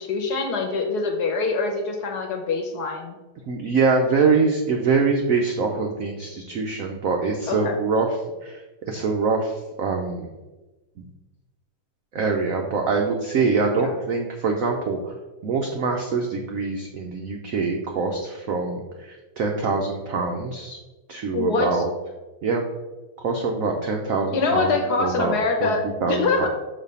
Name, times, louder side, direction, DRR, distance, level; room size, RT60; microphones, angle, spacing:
voice 1, 0.0-3.2 7.5-7.8 13.7-13.9 21.3-21.8 24.3-25.8 26.1-26.5, left 4 dB, 65° left, 3 dB, 1.2 m, -24 dB
voice 2, 3.5-8.1 8.4-10.3 11.0-11.1 12.1-15.1 15.4-20.8 21.1-21.9 22.4-22.6 23.2-25.7 26.0-26.5, right 4 dB, 85° right, 2 dB, 0.7 m, -24 dB
6.1 x 3.2 x 5.4 m, 1.1 s
omnidirectional pair, 2.2 m